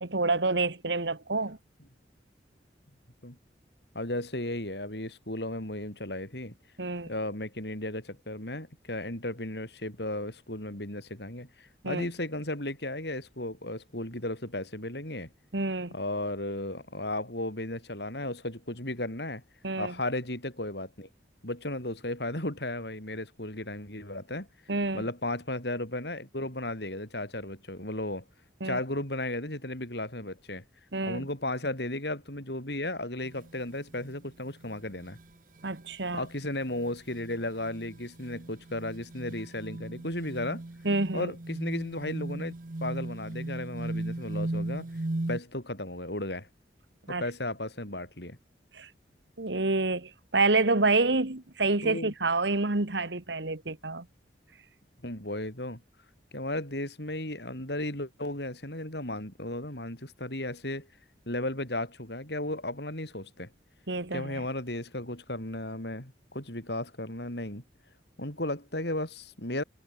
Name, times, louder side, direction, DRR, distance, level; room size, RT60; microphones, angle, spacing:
voice 1, 0.0-1.6 6.8-7.1 11.8-12.1 15.5-15.9 19.6-19.9 24.7-25.0 28.6-28.8 30.9-31.3 35.6-36.3 40.8-41.3 47.1-47.2 48.7-48.9 49.4-54.1 63.9-64.4, right 3 dB, 80° right, 1.9 m, -28 dB
voice 2, 3.9-6.6 7.1-15.3 15.9-19.4 19.8-21.1 21.4-24.5 24.9-28.2 28.6-30.6 31.0-35.2 36.1-40.7 41.1-42.5 42.8-44.9 45.3-46.5 47.1-48.4 51.8-52.1 55.0-55.8 56.3-60.9 61.3-63.5 64.1-67.6 68.2-69.6, left 1 dB, 70° left, 7.5 m, -35 dB
sound 1, 33.2-33.5 33.9-34.2 34.7-34.8 35.1-35.2 35.6-45.4, right 2 dB, 50° right, 0.9 m, -37 dB
head